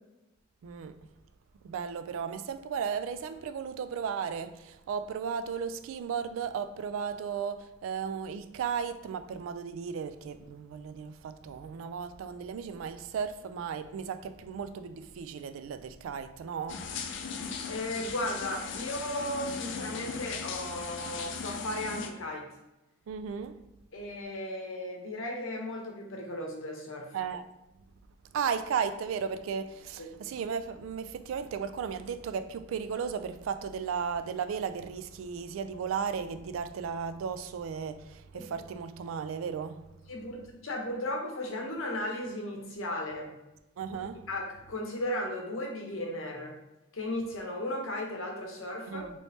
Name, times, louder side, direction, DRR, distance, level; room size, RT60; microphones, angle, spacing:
voice 1, 0.6-0.9 1.6-16.8 23.1-23.6 27.1-27.4 28.3-39.8 43.8-44.3 48.9-49.1, right 6 dB, 80° right, 0.3 m, -35 dB
sound 1, 16.7-22.1, left 5 dB, 65° left, 0.4 m, -38 dB
voice 2, 17.7-22.5 23.9-27.1 30.0-30.1 38.3-38.5 40.1-43.4 43.9-44.0 44.3-46.6 46.9-49.1, left 1 dB, 85° left, 0.8 m, -35 dB
3.2 x 3.1 x 2.7 m
head